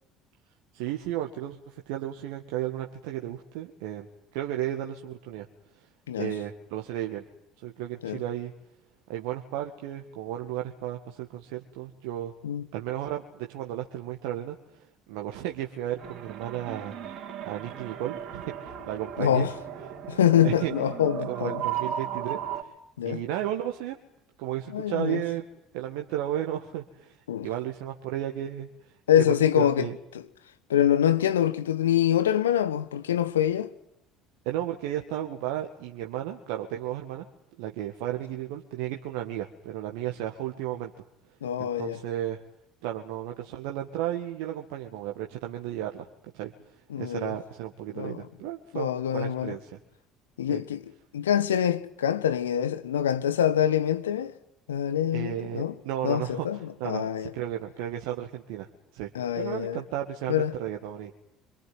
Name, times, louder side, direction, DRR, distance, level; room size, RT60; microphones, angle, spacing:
voice 1, 0.7-5.5 6.2-7.2 7.6-8.5 9.1-12.3 12.7-17.2 17.4-19.5 20.4-20.7 21.3-22.7 23.0-24.0 24.4-25.4 25.7-30.0 34.5-37.3 37.6-41.0 41.6-42.4 42.8-46.1 46.3-49.8 50.5-50.6 55.1-56.5 56.8-58.7 58.9-59.1 59.3-61.1, right 12 dB, 65° right, 1.8 m, -34 dB
sound 1, 16.0-22.6, right 9 dB, 50° right, 3.7 m, -36 dB
voice 2, 19.2-19.5 20.1-21.6 23.0-23.2 24.7-25.2 27.3-27.5 29.1-29.9 30.7-33.7 41.4-42.0 46.9-47.3 47.9-48.2 48.7-49.6 50.4-50.8 51.1-54.3 54.7-55.7 56.0-57.3 59.1-59.8 60.3-60.5, left 10 dB, 80° left, 1.4 m, -25 dB
26.0 x 23.5 x 9.5 m
figure-of-eight pair, 60°, 0 cm